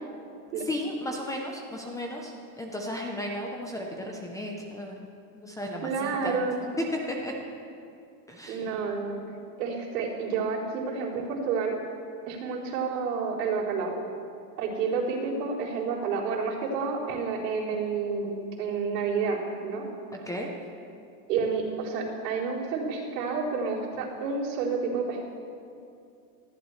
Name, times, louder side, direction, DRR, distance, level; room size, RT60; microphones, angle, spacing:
voice 1, 0.6-5.1 5.3-6.4 7.1-7.3 8.3-8.7 20.3-20.5, equal, 5° left, 0 dB, 0.7 m, -35 dB
voice 2, 5.8-6.7 8.5-9.2 9.6-11.7 12.3-13.9 14.6-19.8 21.3-25.2, right 5 dB, 75° right, -4 dB, 4.0 m, -30 dB
19.5 x 14.5 x 3.2 m, 2.5 s
supercardioid pair, 155°, 48 cm